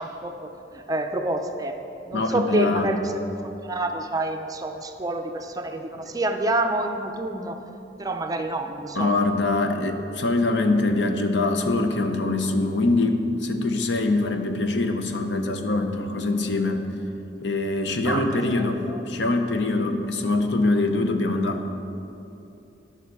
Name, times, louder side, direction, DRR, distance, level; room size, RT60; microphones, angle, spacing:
voice 1, 0.0-1.8 2.1-3.1 3.6-7.6 8.0-9.1 18.0-19.0, right 2 dB, 20° right, 5 dB, 0.5 m, -28 dB
voice 2, 2.1-2.9 6.0-6.1 8.9-16.8 17.4-21.6, left 2 dB, 85° left, 6 dB, 0.7 m, -23 dB
12.0 x 5.7 x 4.7 m, 2.9 s
head